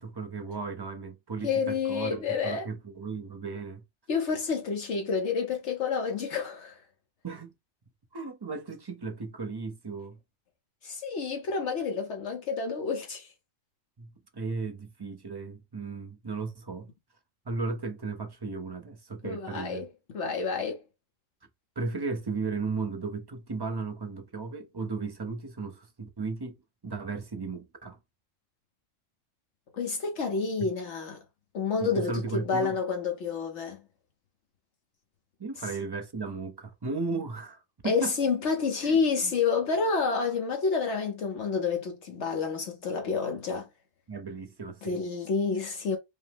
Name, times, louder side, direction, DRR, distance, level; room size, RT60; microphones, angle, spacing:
voice 1, 0.0-3.8 7.2-7.5 8.1-10.2 14.0-16.9 17.5-19.9 21.8-26.6 26.8-28.0 30.6-30.7 31.8-32.8 35.4-38.1 38.8-39.0 39.2-39.3 44.1-45.0, right 4 dB, 30° right, 0.5 m, -35 dB
voice 2, 1.4-2.7 4.1-6.8 10.8-13.3 19.2-19.9 20.1-20.8 29.7-31.2 31.5-33.8 37.8-43.7 44.8-46.0, left 5 dB, 65° left, 1.1 m, -29 dB
5.2 x 2.0 x 3.4 m
omnidirectional pair, 1.3 m